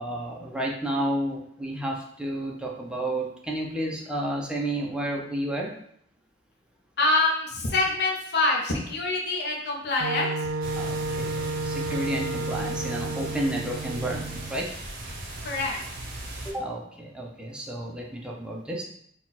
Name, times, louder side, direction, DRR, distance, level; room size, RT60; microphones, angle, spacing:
voice 1, 0.0-5.7 10.7-14.7 16.4-18.8, right 1 dB, 5° right, -2 dB, 0.6 m, -31 dB
voice 2, 7.0-10.5 15.4-15.8, left 2 dB, 60° left, -1 dB, 0.7 m, -25 dB
Wind instrument woodwind instrument, 10.0-14.7, right 2 dB, 75° right, 0.3 m, -32 dB
sound 1, 10.6-16.5, right 1 dB, 50° right, 0.9 m, -38 dB
4.0 x 2.4 x 4.1 m, 0.68 s
head